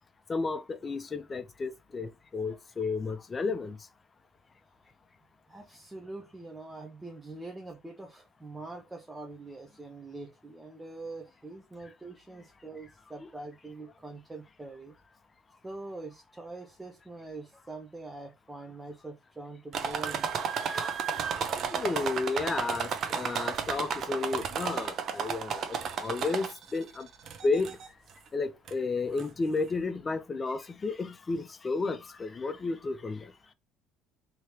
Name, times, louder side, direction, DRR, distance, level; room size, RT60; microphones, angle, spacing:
voice 1, 0.3-3.8 21.7-27.1 27.4-27.7 28.3-33.3, left 3 dB, 30° left, 0.6 m, -32 dB
voice 2, 5.5-14.9 15.6-20.5, right 2 dB, 15° right, 0.7 m, -44 dB
sound 1, 19.7-26.8 27.3-27.9 28.7-28.8 29.2-29.3, right 6 dB, 55° right, 0.6 m, -33 dB
3.1 x 2.9 x 2.9 m
supercardioid pair, 95°, 0 cm